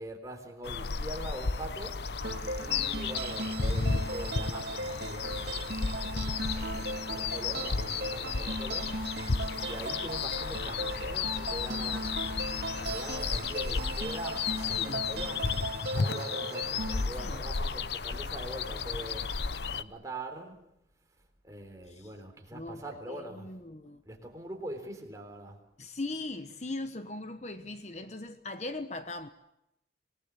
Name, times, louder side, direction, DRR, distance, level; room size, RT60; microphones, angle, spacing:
voice 1, 0.0-2.0 2.6-9.0 9.6-12.5 12.8-15.6 15.9-19.3 19.8-20.7 21.4-23.5 24.1-25.6, right 1 dB, 20° right, 3.8 m, -43 dB
sound 1, 0.6-19.8, left 5 dB, 65° left, 0.8 m, -33 dB
sound 2, 2.2-17.0, right 2 dB, 70° right, 2.4 m, -38 dB
voice 2, 14.6-15.1 17.2-17.4 21.9-22.1 22.5-24.0 25.8-29.3, left 2 dB, 40° left, 1.0 m, -40 dB
26.5 x 19.0 x 8.4 m
head